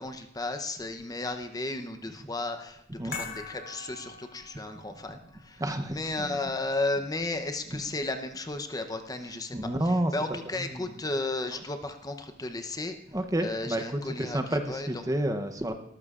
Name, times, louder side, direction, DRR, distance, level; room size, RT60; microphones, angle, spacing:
voice 1, 0.0-5.6 5.9-9.6 9.9-13.0 13.4-14.9, left 2 dB, 20° left, 7 dB, 0.7 m, -34 dB
sound 1, 3.1-9.5 9.8-9.9, left 5 dB, 65° left, 3.5 m, -46 dB
voice 2, 5.6-6.4 7.7-7.8 9.5-10.1 10.6-10.8 11.5-11.6 13.1-15.7, right 1 dB, 15° right, 7 dB, 0.7 m, -30 dB
18.5 x 14.0 x 2.4 m, 0.80 s
head